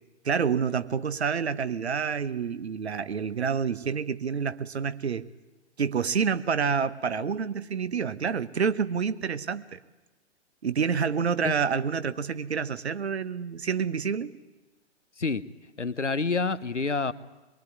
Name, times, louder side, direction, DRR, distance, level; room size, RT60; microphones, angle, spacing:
voice 1, 0.2-5.3 5.8-9.8 10.6-14.3, right 6 dB, 65° right, 13 dB, 1.3 m, -28 dB
voice 2, 15.8-17.1, left 4 dB, 85° left, 13 dB, 1.1 m, -27 dB
23.0 x 22.0 x 9.6 m, 1.1 s
figure-of-eight pair, 115°, 35 cm